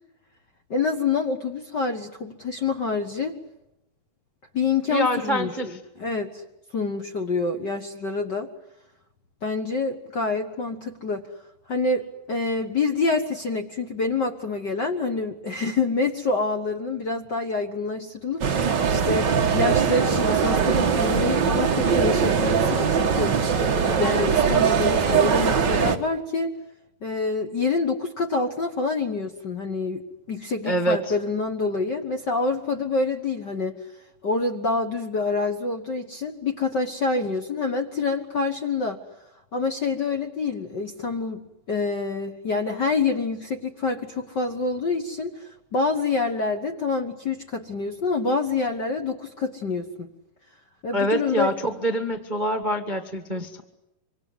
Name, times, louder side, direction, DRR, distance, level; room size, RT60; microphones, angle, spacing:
voice 1, 0.7-3.3 4.5-6.4 6.7-8.5 9.4-11.2 11.7-23.4 24.0-26.5 27.0-33.8 34.2-39.0 39.5-50.1 50.8-51.5, left 4 dB, 55° left, 4 dB, 1.2 m, -27 dB
voice 2, 4.9-5.8 30.6-31.1 50.9-53.6, right 1 dB, 85° right, 5 dB, 0.4 m, -25 dB
sound 1, 18.4-26.0, right 6 dB, 45° right, 1.5 m, -21 dB
25.5 x 25.5 x 8.0 m, 0.89 s
omnidirectional pair, 4.0 m